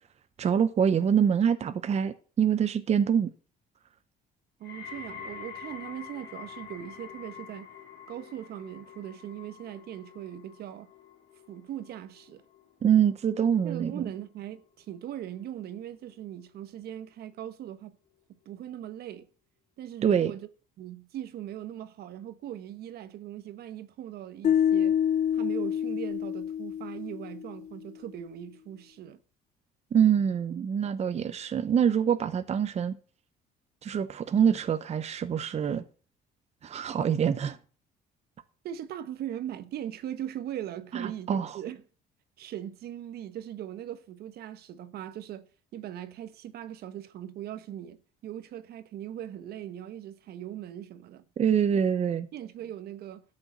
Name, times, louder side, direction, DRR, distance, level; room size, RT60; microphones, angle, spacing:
voice 1, 0.4-3.3 12.8-14.1 20.0-20.3 29.9-33.0 33.8-35.8 36.6-37.6 40.9-41.6 51.4-52.3, right 8 dB, 40° right, 0.9 m, -25 dB
sound 1, 4.6-15.8 16.1-16.6 17.3-17.4, left 7 dB, 80° left, 3.7 m, -47 dB
voice 2, 4.6-7.7 8.1-10.9 11.5-12.4 13.6-17.9 18.4-19.3 19.8-20.5 20.8-24.9 25.3-29.2 38.6-41.8 42.4-45.5 45.7-51.2 52.3-53.2, right 11 dB, 70° right, 1.2 m, -40 dB
sound 2, 24.4-27.6, left 9 dB, 45° left, 0.6 m, -27 dB
12.5 x 6.6 x 7.5 m
cardioid pair, 110°, 17 cm